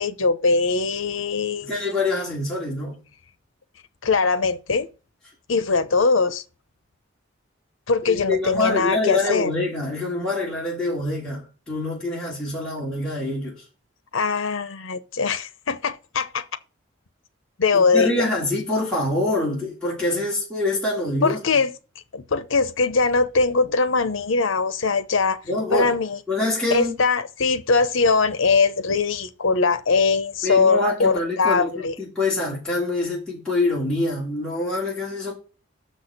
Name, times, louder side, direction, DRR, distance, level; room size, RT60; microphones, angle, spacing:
voice 1, 0.0-1.8 4.0-4.9 5.5-6.4 7.9-9.5 14.1-16.5 17.6-18.3 21.2-21.7 22.1-25.4 25.7-26.2 26.7-31.9, left 4 dB, 85° left, 0.8 m, -21 dB
voice 2, 1.6-3.0 8.1-13.6 17.7-21.4 25.4-25.9 26.3-26.9 30.4-35.3, left 2 dB, 5° left, 3.0 m, -25 dB
6.7 x 6.2 x 6.5 m
head